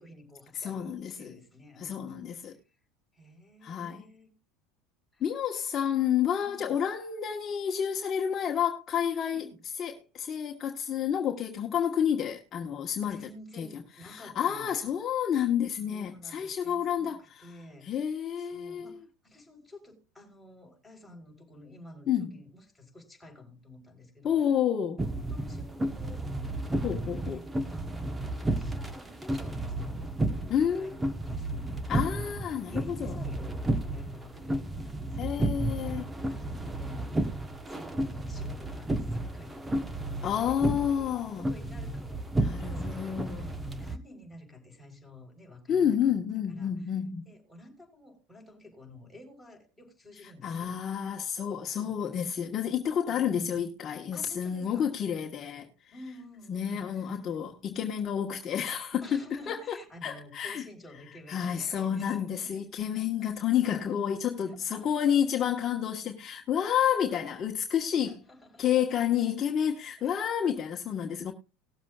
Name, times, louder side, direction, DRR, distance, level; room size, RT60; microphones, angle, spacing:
voice 1, 0.0-2.6 3.1-4.3 5.1-5.2 6.4-6.7 9.3-9.6 13.1-14.8 15.8-24.4 25.0-26.3 26.7-26.9 27.2-28.0 28.3-35.3 36.2-37.3 37.7-39.7 40.4-46.1 46.5-46.9 47.3-50.8 51.7-52.0 53.1-53.6 54.1-54.9 55.9-57.2 59.0-62.6 62.9-63.5 64.5-65.1 66.8-67.4 68.0-68.7 70.0-70.2, left 1 dB, 5° left, 4.2 m, -51 dB
voice 2, 0.5-1.3 1.8-2.5 3.6-4.0 5.2-9.5 9.8-13.3 13.5-17.5 17.8-18.9 22.1-22.4 24.2-25.0 26.8-27.4 30.5-30.9 31.9-33.1 35.1-36.1 40.2-41.5 42.4-43.5 45.7-47.3 50.4-55.9 56.5-60.7 61.3-68.2 68.6-71.3, left 9 dB, 35° left, 1.3 m, -30 dB
sound 1, 25.0-44.0, right 1 dB, 15° right, 1.1 m, -32 dB
19.0 x 7.3 x 2.4 m
supercardioid pair, 115°, 0 cm